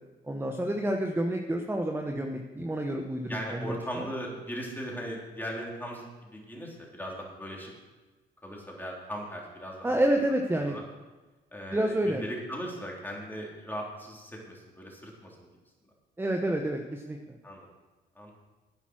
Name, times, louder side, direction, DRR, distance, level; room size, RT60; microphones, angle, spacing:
voice 1, 0.2-4.1 9.8-10.8 11.7-12.2 16.2-17.4, right 1 dB, 10° right, 3 dB, 1.1 m, -29 dB
voice 2, 3.3-7.7 8.4-9.9 10.6-10.8 11.5-15.5 17.4-17.7 18.2-18.3, equal, 10° left, -2 dB, 3.6 m, -38 dB
10.5 x 9.0 x 6.3 m, 1.2 s
cardioid pair, 90°, 20 cm